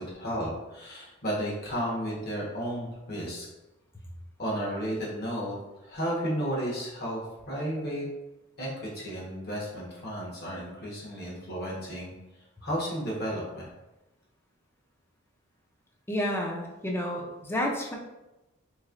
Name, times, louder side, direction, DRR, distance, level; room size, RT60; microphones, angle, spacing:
voice 1, 0.0-3.5 4.4-5.5 5.8-8.1 8.6-12.1 12.6-13.7, equal, 50° left, -4 dB, 1.1 m, -33 dB
voice 2, 16.1-17.9, left 1 dB, 10° left, 0 dB, 0.5 m, -30 dB
3.5 x 3.1 x 2.5 m, 0.98 s
head